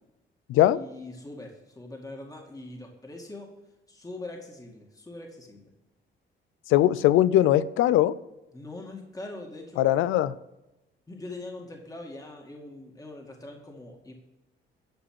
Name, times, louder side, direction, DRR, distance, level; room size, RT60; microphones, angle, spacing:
voice 1, 0.5-3.5 3.9-5.7 8.5-9.9 11.1-14.1, left 2 dB, 15° left, 0 dB, 2.2 m, -42 dB
voice 2, 6.7-8.1 9.8-10.3, left 13 dB, 90° left, 18 dB, 0.5 m, -20 dB
12.5 x 5.2 x 8.8 m, 0.97 s
cardioid pair, 90°, 20 cm